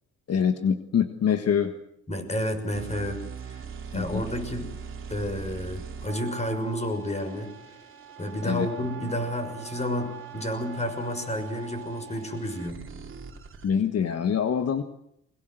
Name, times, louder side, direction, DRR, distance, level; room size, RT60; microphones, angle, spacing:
voice 1, 0.3-1.7 3.9-4.2 8.4-8.7 13.6-14.8, left 7 dB, 55° left, 8 dB, 1.6 m, -25 dB
voice 2, 2.1-3.2 3.4-3.6 3.9-4.7 5.1-7.5 8.2-12.8, equal, 20° left, 7 dB, 6.3 m, -30 dB
sound 1, 2.7-13.7, right 6 dB, 40° right, 3.1 m, -41 dB
23.5 x 21.0 x 8.0 m, 0.76 s
cardioid pair, 90°, 30 cm